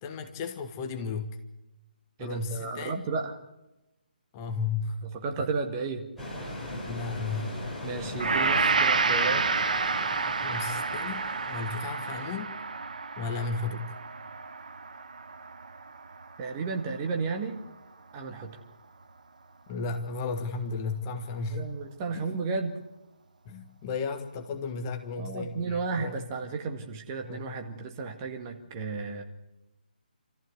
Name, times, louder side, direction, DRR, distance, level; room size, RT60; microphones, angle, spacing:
voice 1, 0.0-1.4 2.2-3.1 4.3-5.5 6.9-7.6 10.4-12.5 13.2-13.9 19.7-21.7 22.1-22.2 23.4-26.2 27.2-27.6, left 4 dB, 20° left, 6 dB, 1.6 m, -34 dB
voice 2, 2.2-3.4 5.1-6.1 7.8-9.7 16.4-17.6 18.1-18.6 21.5-22.8 25.2-29.2, right 4 dB, 20° right, 3 dB, 1.9 m, -33 dB
sound 1, 6.2-12.4, left 1 dB, ahead, 7.1 m, -39 dB
Gong, 8.2-16.6 17.0-17.1, right 4 dB, 55° right, 1.1 m, -29 dB
27.5 x 14.5 x 8.4 m, 0.99 s
figure-of-eight pair, 140°, 5 cm